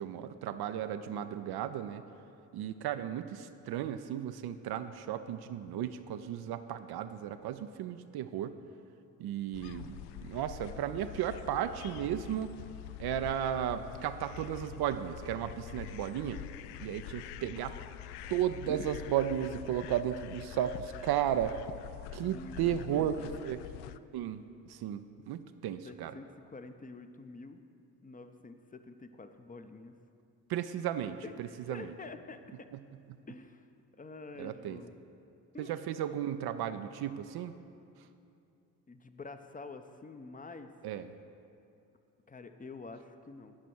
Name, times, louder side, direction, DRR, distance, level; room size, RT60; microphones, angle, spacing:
voice 1, 0.0-2.0 2.5-8.5 9.2-12.5 13.0-16.4 16.8-17.7 18.3-21.6 22.1-23.6 24.1-26.1 30.5-31.9 34.4-34.8 35.6-37.5 40.8-41.1, right 10 dB, 50° right, 10 dB, 0.6 m, -34 dB
sound 1, 9.5-24.0, left 13 dB, 55° left, 0.5 m, -45 dB
voice 2, 18.6-19.8 22.2-23.4 25.8-27.6 28.0-30.0 31.2-32.7 33.3-33.7 34.0-34.9 35.5-35.7 38.9-40.7 42.3-43.5, left 3 dB, 15° left, 8 dB, 0.7 m, -48 dB
18.0 x 6.2 x 4.5 m, 2.6 s
figure-of-eight pair, 45°, 49 cm